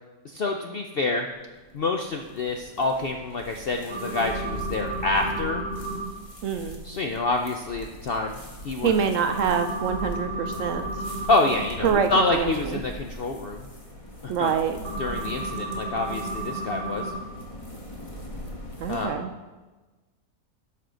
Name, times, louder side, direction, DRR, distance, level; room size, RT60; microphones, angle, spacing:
voice 1, 0.2-1.3 1.7-5.6 6.8-8.4 8.6-8.9 11.3-13.6 14.2-14.5 15.0-17.1 18.9-19.3, left 3 dB, 65° left, 3 dB, 0.6 m, -27 dB
sound 1, 1.3-19.1, equal, 25° left, 1.3 m, -40 dB
sound 2, 3.9-6.0 9.3-11.6 14.8-17.2, right 2 dB, 40° left, 1.6 m, -33 dB
voice 2, 6.4-6.8 8.8-10.9 11.8-12.8 14.3-14.8 18.8-19.3, right 7 dB, 65° right, 7 dB, 0.8 m, -25 dB
12.5 x 5.6 x 3.8 m, 1.2 s
omnidirectional pair, 1.6 m